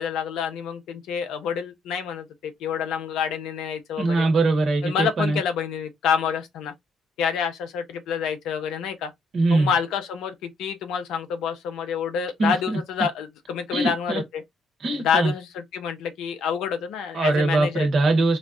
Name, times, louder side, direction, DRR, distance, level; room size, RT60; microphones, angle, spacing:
voice 1, 0.0-4.3 4.8-6.7 7.2-9.1 9.5-14.4 15.0-17.9, left 7 dB, 75° left, 0.7 m, -28 dB
voice 2, 4.0-5.4 9.3-9.7 12.4-12.8 13.7-14.2 14.8-15.3 17.1-18.4, right 3 dB, 60° right, 1.2 m, -22 dB
4.2 x 2.3 x 2.5 m
hypercardioid pair, 50°, 0 cm